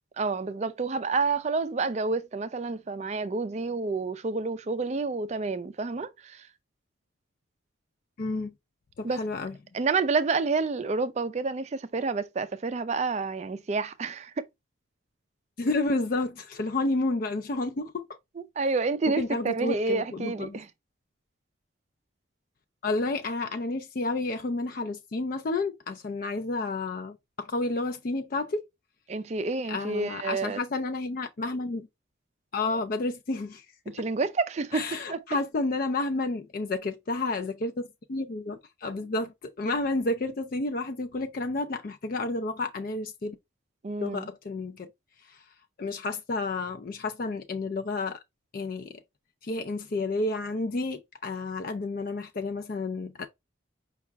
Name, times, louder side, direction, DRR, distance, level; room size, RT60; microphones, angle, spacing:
voice 1, 0.2-6.5 9.0-9.2 9.7-14.5 18.4-20.7 29.1-30.6 33.9-35.2 43.8-44.3, right 4 dB, 35° right, 0.4 m, -29 dB
voice 2, 8.2-8.5 9.0-9.5 15.6-18.1 19.2-20.6 22.8-28.6 29.7-31.9 32.5-33.6 34.7-37.7 38.1-43.4 44.0-44.9 45.3-45.4 45.8-48.2 48.5-49.0 49.4-53.3, left 2 dB, 45° left, 0.4 m, -30 dB
5.5 x 2.3 x 3.4 m
head